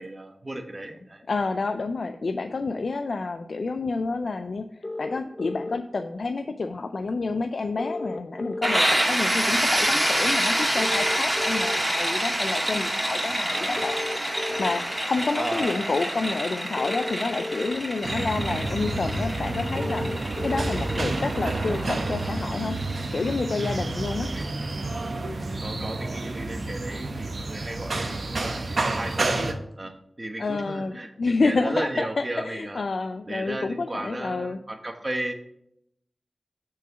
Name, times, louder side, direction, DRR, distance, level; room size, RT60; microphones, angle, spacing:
voice 1, 0.0-1.2 13.5-13.8 15.4-15.9 24.1-24.4 25.6-32.8 33.2-35.3, right 1 dB, 35° right, 5 dB, 1.1 m, -34 dB
voice 2, 1.3-4.7 5.0-14.0 14.6-22.8 23.1-24.3 30.4-34.6, left 3 dB, 75° left, 8 dB, 0.4 m, -29 dB
sound 1, 4.8-5.8 7.8-8.8 10.8-11.8 13.8-14.8 16.8-17.8 19.8-20.8, left 2 dB, 35° left, 0.6 m, -33 dB
sound 2, 8.6-24.2, right 1 dB, 20° right, 2.1 m, -27 dB
sound 3, 18.0-29.5, right 2 dB, 75° right, 0.8 m, -29 dB
6.2 x 4.6 x 5.0 m, 0.76 s
cardioid pair, 40°, 0 cm